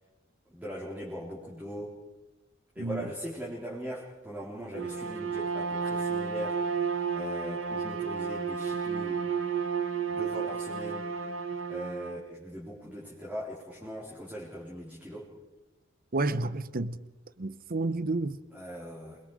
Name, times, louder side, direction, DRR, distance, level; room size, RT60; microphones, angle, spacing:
voice 1, 0.5-1.9 2.8-6.6 7.1-9.2 10.1-11.1 11.7-15.3 18.5-19.2, right 1 dB, 10° right, 4.0 m, -40 dB
voice 2, 2.8-3.1 16.1-17.0 17.4-18.4, right 2 dB, 45° right, 0.9 m, -30 dB
Bowed string instrument, 4.7-12.2, right 6 dB, 80° right, 1.7 m, -32 dB
28.0 x 22.0 x 5.0 m
head